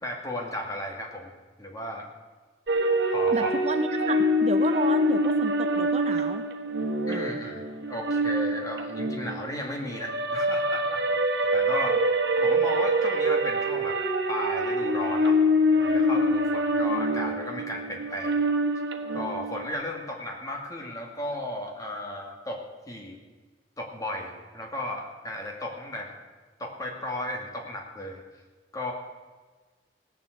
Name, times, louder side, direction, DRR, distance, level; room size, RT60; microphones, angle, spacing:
voice 1, 0.0-1.3 1.6-2.1 3.1-3.5 7.1-12.0 12.4-15.4 15.8-18.4 19.1-23.2 23.8-26.2 26.6-28.2 28.7-28.9, left 1 dB, 20° left, 1 dB, 2.3 m, -35 dB
sound 1, 2.7-19.7, equal, 75° right, 1.4 m, -25 dB
voice 2, 3.3-6.5, right 3 dB, 40° right, 7 dB, 0.7 m, -31 dB
17.5 x 7.4 x 8.0 m, 1.3 s
head